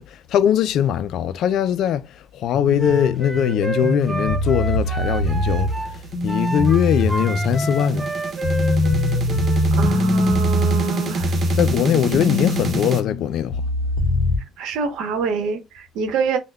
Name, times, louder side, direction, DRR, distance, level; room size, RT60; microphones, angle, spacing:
voice 1, 0.0-8.1 11.6-13.6, left 9 dB, 65° left, 0.3 m, -21 dB
sound 1, 2.5-14.4, left 1 dB, 50° left, 0.8 m, -22 dB
Wind instrument woodwind instrument, 2.7-5.9 6.3-9.7, equal, 15° right, 1.0 m, -30 dB
sound 2, 4.9-13.0, right 5 dB, 50° right, 0.9 m, -30 dB
voice 2, 9.7-11.3 14.6-16.4, right 5 dB, 80° right, 0.9 m, -25 dB
5.2 x 2.2 x 2.2 m
cardioid pair, 115°, 0 cm